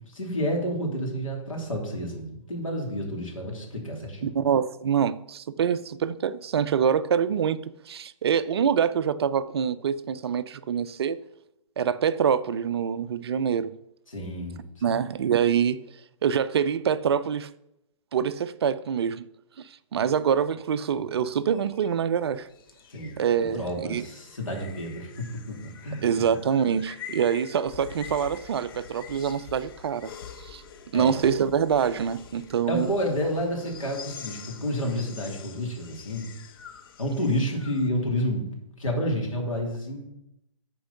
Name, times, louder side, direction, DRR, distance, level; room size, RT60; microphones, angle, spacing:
voice 1, 0.0-4.3 14.1-15.0 22.9-23.1 23.5-26.0 30.9-31.2 32.7-36.3 37.0-38.4 38.8-40.1, equal, 80° left, 2.9 m, -30 dB
voice 2, 4.2-11.2 11.8-13.8 14.8-15.8 16.2-17.5 18.1-19.3 19.6-22.5 23.2-24.1 26.0-30.1 30.4-30.6 30.9-32.9, right 7 dB, 50° right, 0.4 m, -25 dB
sound 1, 20.9-37.9, left 7 dB, 45° left, 0.8 m, -46 dB
10.0 x 4.6 x 5.5 m
figure-of-eight pair, 125°, 17 cm